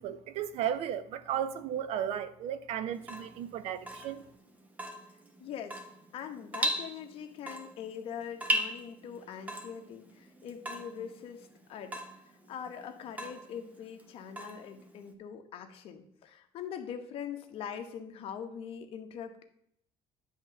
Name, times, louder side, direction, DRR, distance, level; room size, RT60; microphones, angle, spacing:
voice 1, 0.0-4.2, right 9 dB, 65° right, 0.6 m, -34 dB
Water tap faucet / Drip, 2.9-15.1, right 1 dB, 15° right, 1.0 m, -38 dB
voice 2, 5.4-5.8 6.1-19.4, left 8 dB, 55° left, 1.1 m, -43 dB
10.0 x 3.7 x 6.8 m
cardioid pair, 155°, 12 cm